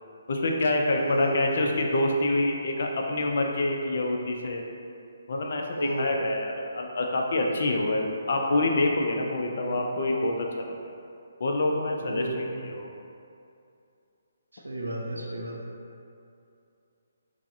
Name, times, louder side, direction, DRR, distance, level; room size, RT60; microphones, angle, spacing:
voice 1, 0.3-4.6 5.3-10.9 11.4-12.9, left 2 dB, 55° left, 1 dB, 0.4 m, -27 dB
voice 2, 1.0-1.7 5.8-6.1 9.4-9.9 12.0-12.5 14.5-15.7, right 1 dB, 80° right, -1 dB, 0.5 m, -32 dB
4.6 x 2.1 x 2.5 m, 2.5 s
figure-of-eight pair, 140°, 0 cm